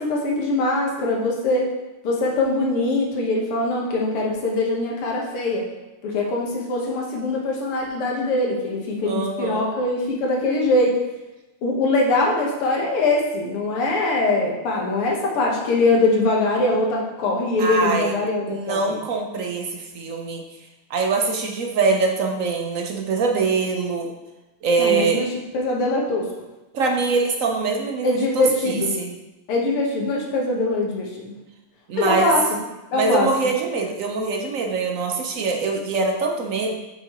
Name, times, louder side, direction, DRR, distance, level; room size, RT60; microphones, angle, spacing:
voice 1, 0.0-1.7 2.0-5.7 6.0-10.9 11.6-19.0 24.8-25.3 25.5-26.3 28.0-28.9 29.5-31.3 32.0-32.5 32.9-33.3, left 2 dB, 90° left, -2 dB, 2.2 m, -22 dB
voice 2, 9.1-9.7 17.6-18.1 18.5-20.4 20.9-24.1 24.6-25.2 26.7-29.1 31.9-32.3 32.9-36.7, right 4 dB, 60° right, 2 dB, 0.8 m, -23 dB
8.3 x 6.2 x 3.1 m, 1.0 s
omnidirectional pair, 2.4 m